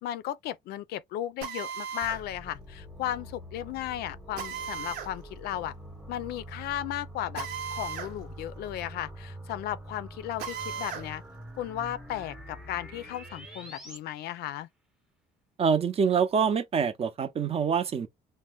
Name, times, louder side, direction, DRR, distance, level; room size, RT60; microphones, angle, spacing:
voice 1, 0.0-5.7 6.1-11.2 11.6-14.7, left 12 dB, 70° left, 0.4 m, -35 dB
Drill, 1.4-2.2 4.4-5.1 7.3-8.1 8.5-8.6 10.4-11.1, right 7 dB, 80° right, 1.0 m, -36 dB
sound 1, 2.0-14.0, right 1 dB, 5° right, 0.8 m, -45 dB
voice 2, 15.6-18.1, right 6 dB, 35° right, 0.6 m, -25 dB
2.6 x 2.1 x 3.4 m
cardioid pair, 110°, 17 cm